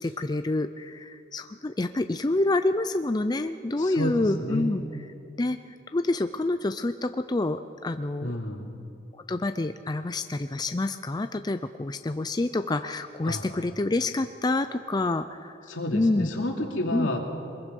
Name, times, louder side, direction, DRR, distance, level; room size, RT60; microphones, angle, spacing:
voice 1, 0.0-4.8 5.4-5.6 5.9-8.3 9.3-15.5 15.9-16.3 16.9-17.1, left 2 dB, 20° left, 9 dB, 0.4 m, -27 dB
voice 2, 3.8-4.7 8.2-8.7 13.3-13.4 15.7-17.2, left 1 dB, 80° left, 1 dB, 2.8 m, -30 dB
23.0 x 21.5 x 5.4 m, 2.5 s
head